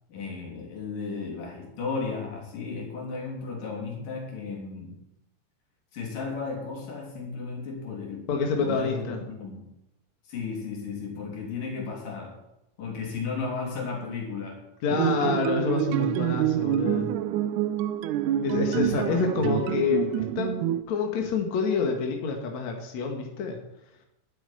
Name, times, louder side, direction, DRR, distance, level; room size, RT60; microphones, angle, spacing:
voice 1, 0.1-4.9 5.9-9.7 10.2-12.4 12.8-14.6 18.8-19.5, left 4 dB, 85° left, 0 dB, 5.2 m, -34 dB
voice 2, 8.3-9.2 14.8-17.2 18.4-20.6 20.9-23.6, left 5 dB, 60° left, 2 dB, 3.0 m, -27 dB
sound 1, 14.9-20.8, right 11 dB, 80° right, 2.1 m, -27 dB
12.0 x 8.4 x 10.0 m, 0.86 s
omnidirectional pair, 3.7 m